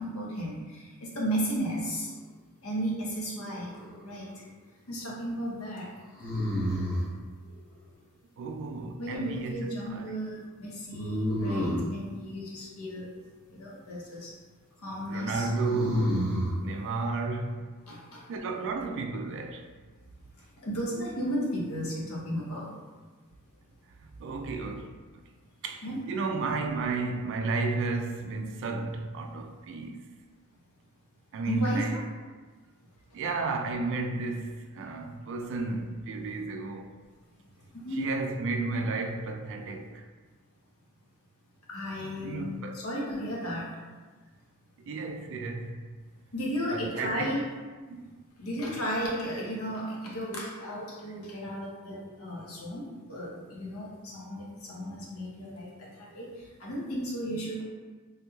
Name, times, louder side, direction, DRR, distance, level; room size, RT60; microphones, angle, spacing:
voice 1, 0.0-2.1 2.6-3.7 4.0-4.3 4.9-5.9 9.0-13.1 13.5-14.3 14.8-15.5 17.9-18.3 20.6-22.7 25.8-26.0 31.5-32.0 37.7-38.0 41.7-43.7 46.3-47.4 48.4-56.3 56.6-57.6, equal, 75° left, 0.8 m, -34 dB
sound 1, 3.4-4.1 6.2-7.1 10.9-12.0 15.3-16.6, equal, 40° left, 0.9 m, -29 dB
voice 2, 8.4-9.6 9.8-10.1 15.1-16.3 16.6-17.7 18.3-19.7 24.2-25.0 25.6-30.1 31.3-32.0 33.1-36.9 37.9-40.1 42.0-42.8 44.8-45.8 46.7-47.4 47.9-48.1, right 3 dB, 60° right, 0.3 m, -33 dB
3.3 x 3.0 x 2.3 m
head